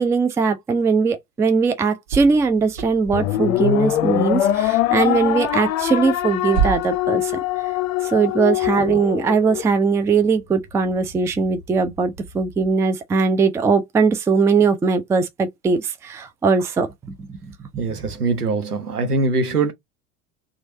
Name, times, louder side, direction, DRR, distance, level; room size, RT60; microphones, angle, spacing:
voice 1, 0.0-7.3 8.0-17.3 17.7-18.0, right 5 dB, 5° right, 0.3 m, -20 dB
sound 1, 2.1-12.8, right 7 dB, 70° right, 1.1 m, -34 dB
sound 2, 3.1-9.7, left 13 dB, 60° left, 0.6 m, -22 dB
voice 2, 17.8-19.7, right 3 dB, 90° right, 0.8 m, -22 dB
3.1 x 2.4 x 3.8 m
figure-of-eight pair, 70°, 45 cm